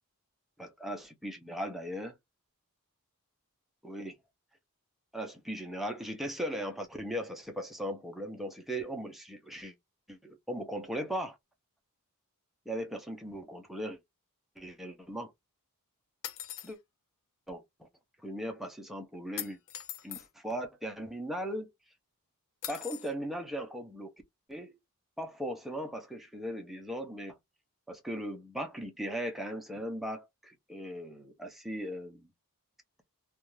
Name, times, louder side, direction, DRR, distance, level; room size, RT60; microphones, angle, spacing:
voice 1, 0.6-2.2 3.8-4.2 5.1-9.7 10.1-11.4 12.7-14.0 14.6-15.3 16.6-16.8 17.5-17.9 18.2-19.6 20.0-21.7 22.7-24.1 24.5-24.8 25.2-27.4 27.9-32.3, equal, ahead, 0.5 m, -38 dB
sound 1, 16.2-16.7 19.4-20.3 22.6-23.1, left 12 dB, 60° left, 0.4 m, -40 dB
2.4 x 2.2 x 3.0 m
head